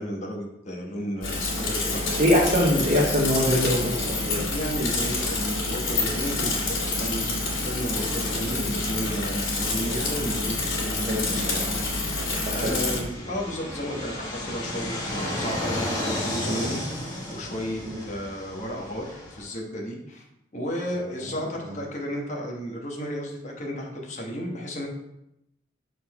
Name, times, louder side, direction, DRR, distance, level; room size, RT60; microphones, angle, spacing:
voice 1, 0.0-2.2 4.5-12.1 12.5-16.8 17.3-20.2 20.5-24.9, equal, 35° left, -1 dB, 1.2 m, -33 dB
Bicycle / Mechanisms, 1.2-13.0, left 2 dB, 80° left, 2.4 m, -27 dB
voice 2, 2.2-4.5 11.0-11.2 12.6-12.7 16.4-16.7 17.8-18.0, equal, 35° right, -4 dB, 1.0 m, -23 dB
Fixed-wing aircraft airplane, 10.2-19.4, left 1 dB, 20° left, 1.5 m, -34 dB
6.6 x 4.2 x 4.2 m, 0.84 s
head